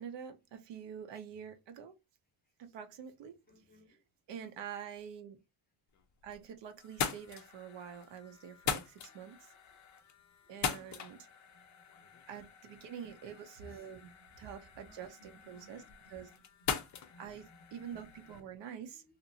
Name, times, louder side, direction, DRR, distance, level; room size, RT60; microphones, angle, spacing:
voice 1, 0.0-1.9 2.6-3.4 3.9-4.0 4.3-5.4 6.2-9.5 10.5-11.3 12.3-14.1 14.4-15.8 16.1-16.3 17.2-17.4 17.7-19.0, right 8 dB, 60° right, 0.7 m, -46 dB
voice 2, 3.5-4.0 10.6-11.1 11.5-11.6 11.9-12.2 13.7-13.8 14.7-18.4, equal, 20° left, 0.9 m, -63 dB
sound 1, 5.9-6.5 6.8-18.4, left 7 dB, 40° left, 0.5 m, -42 dB
2.8 x 2.5 x 2.6 m
cardioid pair, 120°, 48 cm